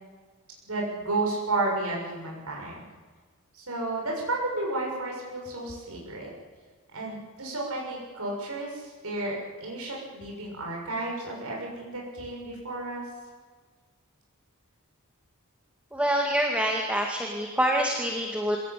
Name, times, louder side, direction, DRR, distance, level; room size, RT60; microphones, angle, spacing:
voice 1, 0.6-2.8 3.5-6.3 6.9-13.0, right 2 dB, 75° right, -2 dB, 6.8 m, -32 dB
voice 2, 15.9-18.6, equal, 5° right, 0 dB, 2.2 m, -26 dB
26.0 x 18.0 x 8.5 m, 1.4 s
head